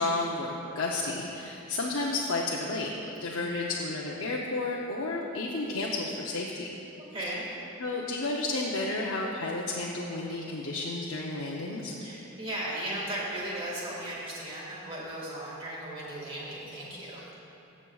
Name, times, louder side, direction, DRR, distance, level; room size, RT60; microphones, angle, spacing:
voice 1, 0.0-2.9 3.2-6.7 7.8-11.9, left 2 dB, 80° left, -3 dB, 0.6 m, -32 dB
voice 2, 3.3-3.7 7.1-7.5 12.0-17.2, right 1 dB, 25° right, -6 dB, 1.8 m, -36 dB
15.0 x 7.2 x 2.3 m, 3.0 s
head